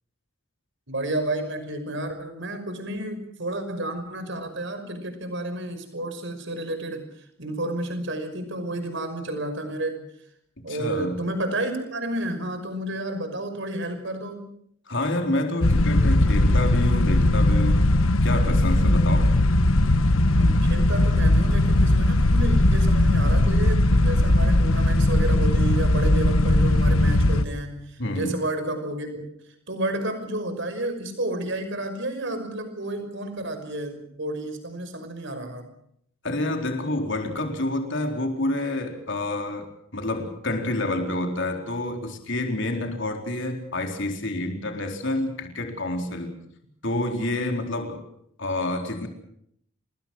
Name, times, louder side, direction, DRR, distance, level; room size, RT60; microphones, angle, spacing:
voice 1, 0.9-7.1 7.4-10.0 10.6-14.5 20.4-29.3 29.7-35.7, right 1 dB, 55° right, 8 dB, 5.6 m, -31 dB
voice 2, 10.7-11.2 14.9-19.4 28.0-28.4 36.2-46.4 46.8-48.0 48.4-49.1, left 1 dB, 55° left, 4 dB, 4.2 m, -28 dB
sound 1, 15.6-27.4, left 1 dB, 70° left, 1.3 m, -19 dB
29.0 x 20.5 x 6.3 m, 0.71 s
head